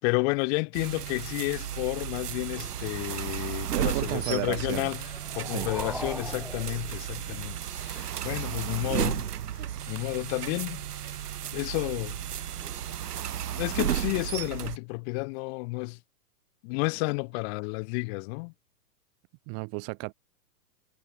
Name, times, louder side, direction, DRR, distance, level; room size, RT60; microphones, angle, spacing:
voice 1, 0.0-5.0 5.3-9.3 9.9-11.2 11.5-12.2 13.6-16.0 16.6-18.5, left 30 dB, 40° left, 4.5 m, -31 dB
sound 1, 0.7-14.8, right 10 dB, 70° right, 5.7 m, -34 dB
voice 2, 3.7-4.9 5.4-5.7 19.5-20.1, right 40 dB or more, 30° right, 1.4 m, -33 dB
sound 2, 4.9-7.6, right 1 dB, ahead, 4.7 m, -40 dB
hypercardioid pair, 140°, 48 cm